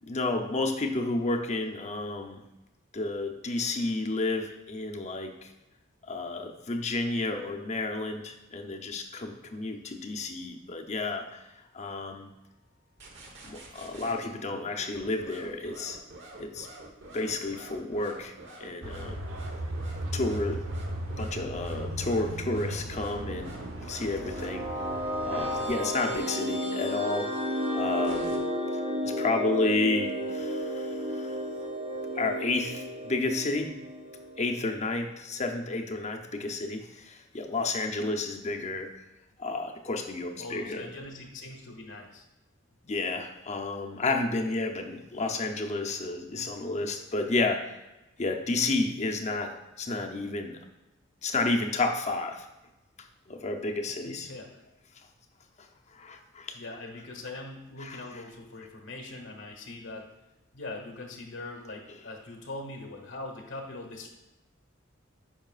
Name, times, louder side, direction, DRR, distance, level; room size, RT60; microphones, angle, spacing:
voice 1, 0.0-2.4 2.9-5.5 6.1-11.5 11.7-12.3 13.4-16.0 16.4-16.7 17.1-18.3 18.6-19.2 20.1-20.6 21.2-23.6 23.9-24.7 25.2-27.3 27.7-28.4 29.0-31.3 32.2-33.7 34.4-38.9 39.4-40.9 42.8-47.8 48.2-50.6 51.2-52.5 53.3-54.3 55.9-56.6 57.8-58.2, left 2 dB, 35° left, 3 dB, 0.7 m, -31 dB
sound 1, 13.0-14.3 14.9-26.2 28.0-28.4, right 2 dB, 60° right, 1.2 m, -47 dB
sound 2, 18.8-25.7, right 1 dB, 80° right, 0.9 m, -36 dB
sound 3, 23.9-34.7, equal, 30° right, 0.7 m, -33 dB
voice 2, 40.4-42.2 54.0-54.5 56.5-60.1 60.5-64.1, left 2 dB, 85° left, 1 dB, 1.1 m, -41 dB
9.2 x 5.8 x 2.4 m, 1.0 s
head